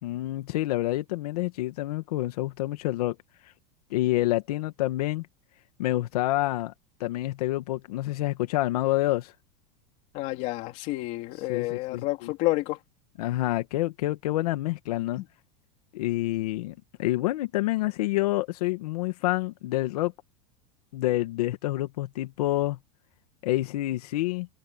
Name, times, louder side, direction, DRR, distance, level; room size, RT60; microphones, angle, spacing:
voice 1, 0.0-3.2 3.4-3.5 3.9-5.3 5.8-6.7 7.0-9.3 11.5-12.3 13.2-15.2 15.9-20.1 20.9-22.8 23.4-24.5, left 16 dB, 80° left, 1.6 m, -28 dB
voice 2, 10.1-12.8 15.2-15.3, left 19 dB, 40° left, 2.8 m, -29 dB
supercardioid pair, 180°, 19 cm